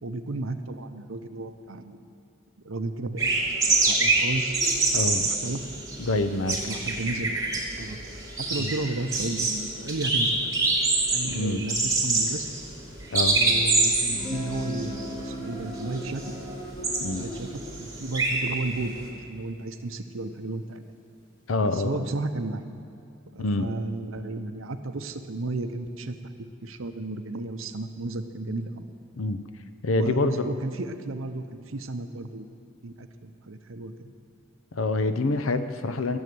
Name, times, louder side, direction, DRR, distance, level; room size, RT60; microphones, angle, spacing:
voice 1, 0.0-2.0 2.6-4.6 5.2-5.7 6.5-7.5 7.8-8.0 8.4-12.5 13.3-16.2 17.1-20.9 21.6-22.7 23.3-26.1 26.6-28.9 29.9-32.5 32.8-34.1, right 2 dB, 75° right, 8 dB, 0.8 m, -33 dB
sound 1, 3.2-19.0, right 3 dB, 15° right, 3.0 m, -26 dB
voice 2, 4.9-5.3 6.0-6.6 8.6-8.7 11.3-11.7 13.1-13.4 17.0-17.2 21.5-22.1 23.4-23.7 29.2-29.4 29.8-30.6 34.7-36.2, left 2 dB, 80° left, 10 dB, 0.8 m, -26 dB
Guitar, 14.1-19.8, equal, 40° left, 2.6 m, -40 dB
14.0 x 7.2 x 9.5 m, 2.4 s
head